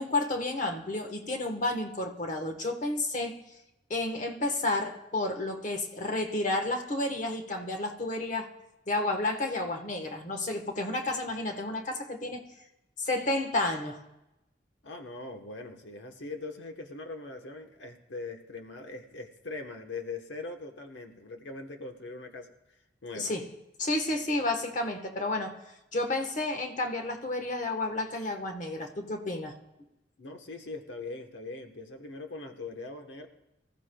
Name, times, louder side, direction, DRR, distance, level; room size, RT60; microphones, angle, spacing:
voice 1, 0.0-3.4 3.9-8.5 8.9-12.5 13.0-14.0 23.1-23.5 23.8-25.6 25.9-29.5, left 2 dB, 45° left, 4 dB, 1.3 m, -31 dB
voice 2, 14.8-22.5 23.0-23.3 30.2-33.3, left 3 dB, 90° left, 4 dB, 1.1 m, -41 dB
24.5 x 13.5 x 2.3 m, 0.94 s
head